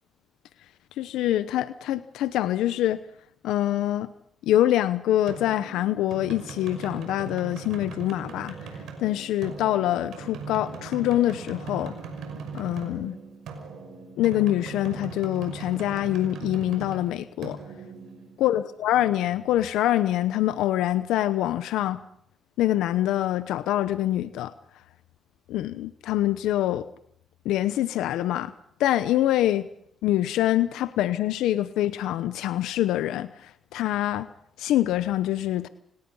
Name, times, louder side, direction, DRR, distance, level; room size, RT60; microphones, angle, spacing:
voice 1, 1.0-3.0 3.4-4.1 4.4-8.6 9.0-11.9 12.5-13.2 14.2-17.6 18.4-22.0 22.6-24.5 25.5-26.9 27.4-28.5 28.8-29.7 30.0-34.3 34.6-35.7, left 13 dB, 90° left, 13 dB, 0.9 m, -25 dB
sound 1, 5.3-18.8, right 5 dB, 75° right, 5.9 m, -39 dB
28.0 x 18.5 x 5.6 m, 0.69 s
cardioid pair, 90°, 0 cm